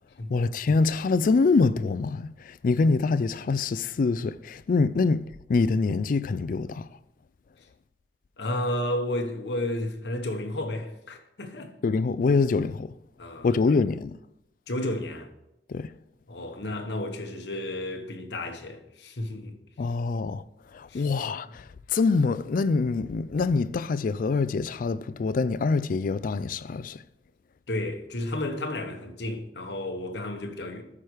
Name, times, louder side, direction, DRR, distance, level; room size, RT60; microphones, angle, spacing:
voice 1, 0.3-6.9 11.8-13.0 13.4-14.2 15.7-15.9 19.8-20.4 20.7-27.0, left 4 dB, 45° left, 0.3 m, -25 dB
voice 2, 8.4-11.7 13.2-13.8 14.7-15.3 16.3-19.5 20.9-21.1 27.7-30.8, left 1 dB, 65° left, 1.1 m, -32 dB
13.0 x 4.9 x 4.7 m
head